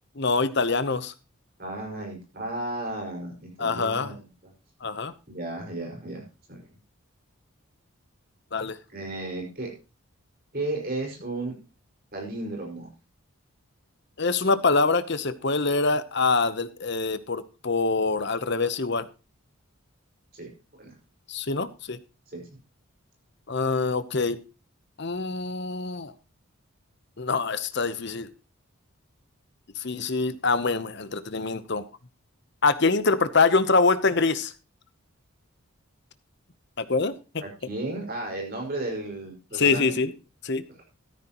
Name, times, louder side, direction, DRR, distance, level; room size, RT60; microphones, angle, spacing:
voice 1, 0.2-1.1 3.6-4.2 4.8-5.1 8.5-8.8 14.2-19.1 21.3-22.0 23.5-24.4 25.0-26.1 27.2-28.3 29.8-31.8 32.6-34.5 36.8-37.1 39.5-40.1 40.4-40.6, left 4 dB, 50° left, 13 dB, 0.9 m, -24 dB
voice 2, 1.6-4.3 5.3-6.7 8.9-9.7 10.5-11.5 12.1-12.9 20.3-20.9 22.3-22.5 37.4-40.0, right 2 dB, 45° right, 1 dB, 5.3 m, -34 dB
13.5 x 13.0 x 3.0 m, 0.30 s
head